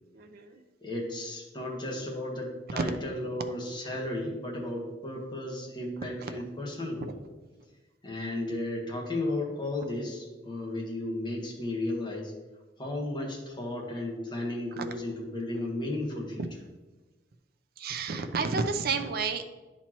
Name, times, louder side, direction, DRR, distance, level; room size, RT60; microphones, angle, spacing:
voice 1, 0.1-0.6 2.8-2.9 6.2-6.3 14.8-14.9 17.8-19.4, right 4 dB, 55° right, 7 dB, 0.5 m, -30 dB
voice 2, 0.8-7.1 8.0-12.3 12.8-16.5, left 1 dB, 25° left, -2 dB, 1.3 m, -34 dB
10.0 x 4.4 x 3.0 m, 1.2 s
head